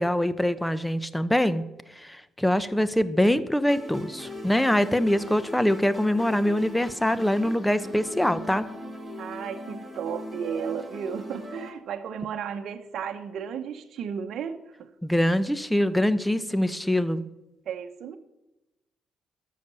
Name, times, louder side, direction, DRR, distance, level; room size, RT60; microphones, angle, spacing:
voice 1, 0.0-1.6 2.0-8.7 15.0-17.2, left 1 dB, 5° left, 14 dB, 0.8 m, -24 dB
sound 1, 3.7-11.7, left 1 dB, 10° right, 5.0 m, -40 dB
voice 2, 9.2-14.9 17.7-18.2, right 7 dB, 70° right, 6 dB, 0.9 m, -34 dB
12.5 x 6.6 x 6.9 m, 0.96 s
cardioid pair, 90°, 0 cm